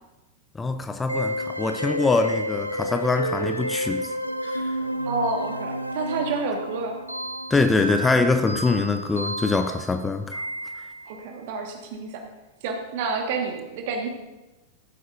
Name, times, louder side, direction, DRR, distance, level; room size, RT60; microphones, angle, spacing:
voice 1, 0.6-4.1 4.4-4.7 7.5-10.4, left 3 dB, 15° left, 8 dB, 0.6 m, -23 dB
sound 1, 1.1-11.2, equal, 90° right, 0.4 m, -31 dB
voice 2, 5.1-7.0 11.1-12.2 12.6-14.1, right 4 dB, 50° right, 3 dB, 1.5 m, -29 dB
14.0 x 7.8 x 2.6 m, 1.1 s
figure-of-eight pair, 90°, 0 cm